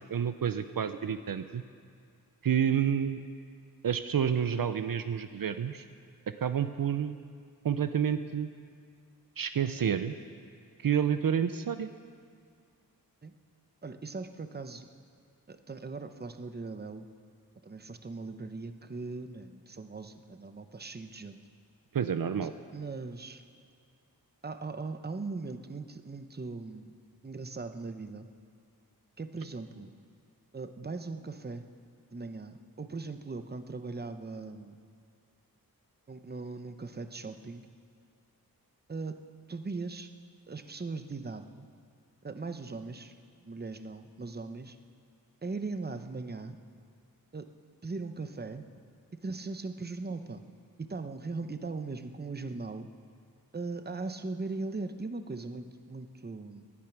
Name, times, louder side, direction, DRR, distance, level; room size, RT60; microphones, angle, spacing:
voice 1, 0.0-1.6 2.4-3.2 3.8-5.8 6.4-7.2 7.6-8.5 9.4-10.1 10.8-11.9 21.9-22.5, right 8 dB, 65° right, 10 dB, 0.6 m, -29 dB
voice 2, 13.8-14.9 15.5-17.1 17.6-21.4 22.4-23.4 24.4-26.9 27.2-28.3 29.2-29.9 30.5-31.7 32.1-34.8 36.1-37.7 38.9-39.2 39.5-40.1 40.5-41.7 42.2-43.1 43.4-44.8 45.4-46.6 47.3-47.5 47.8-48.6 49.2-50.4 50.8-52.9 53.5-56.6, right 3 dB, 25° right, 9 dB, 0.8 m, -39 dB
18.5 x 12.0 x 6.0 m, 2.3 s
wide cardioid pair, 95°, 37 cm